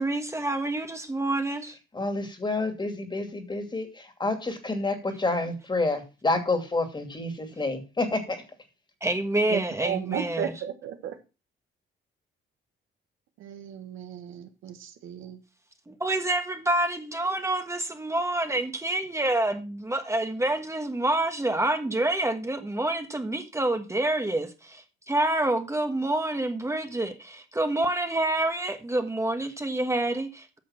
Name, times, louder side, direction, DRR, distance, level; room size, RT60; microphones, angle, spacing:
voice 1, 0.0-1.8 9.0-10.5 15.9-30.6, right 1 dB, 15° right, 1.3 m, -27 dB
voice 2, 1.9-8.4, left 2 dB, 20° left, 2.5 m, -29 dB
voice 3, 9.5-11.2 13.4-15.4, right 9 dB, 90° right, 1.4 m, -34 dB
9.4 x 6.3 x 5.8 m
cardioid pair, 90°, 20 cm